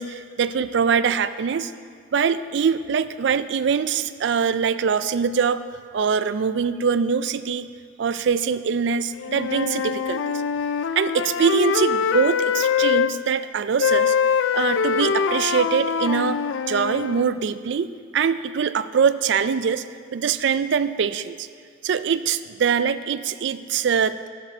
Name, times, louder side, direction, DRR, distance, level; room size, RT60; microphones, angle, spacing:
voice 1, 0.0-1.7 2.1-5.6 5.9-7.7 8.0-10.2 11.0-14.1 14.5-16.4 16.7-21.5 21.8-24.3, right 6 dB, 60° right, 13 dB, 0.3 m, -23 dB
Wind instrument woodwind instrument, 9.2-13.1 13.8-17.3, left 6 dB, 65° left, 0.3 m, -23 dB
11.5 x 7.1 x 5.5 m, 2.1 s
head